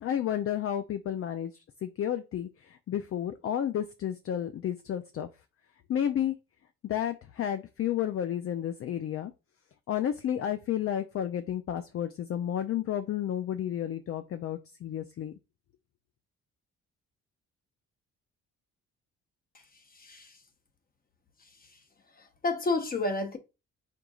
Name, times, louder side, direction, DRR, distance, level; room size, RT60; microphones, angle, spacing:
voice 1, 0.0-5.3 5.9-6.4 6.8-9.3 9.9-15.3, left 10 dB, 50° left, 0.5 m, -31 dB
voice 2, 19.5-20.4 21.4-21.8 22.1-23.4, left 2 dB, 30° left, 0.9 m, -32 dB
4.5 x 3.8 x 2.4 m
cardioid pair, 90°, 30 cm